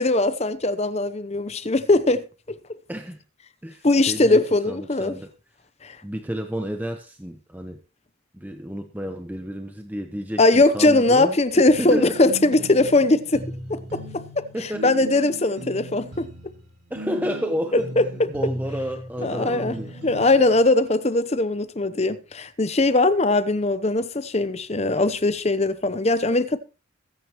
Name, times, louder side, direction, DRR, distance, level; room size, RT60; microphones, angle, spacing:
voice 1, 0.0-2.2 3.8-5.2 5.8-6.0 10.4-13.4 13.7-14.4 14.8-16.3 18.0-18.1 19.2-19.7 20.0-26.6, left 2 dB, 30° left, 0.8 m, -20 dB
voice 2, 2.9-3.2 3.6-5.3 6.0-7.8 8.3-11.4 11.8-12.2 14.5-14.9 16.9-19.9, equal, 10° right, 0.9 m, -31 dB
sound 1, 11.7-20.6, right 1 dB, 70° right, 4.8 m, -37 dB
21.5 x 9.4 x 3.0 m
head